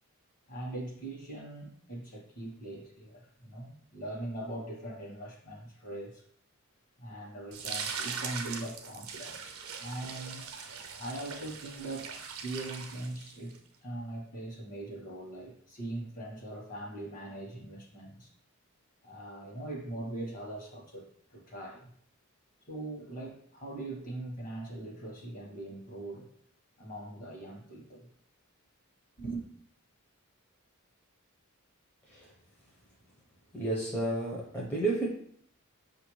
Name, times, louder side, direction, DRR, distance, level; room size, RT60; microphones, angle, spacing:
voice 1, 0.5-6.2 7.0-10.5 11.0-12.1 12.4-18.3 19.0-21.9 22.7-26.3 26.8-28.1 29.2-29.4, right 2 dB, 40° left, -1 dB, 1.1 m, -41 dB
sound 1, 7.5-13.6, right 6 dB, 80° right, 0.6 m, -40 dB
voice 2, 33.5-35.1, right 2 dB, 5° left, -5 dB, 0.6 m, -31 dB
5.6 x 2.5 x 3.1 m, 0.64 s
head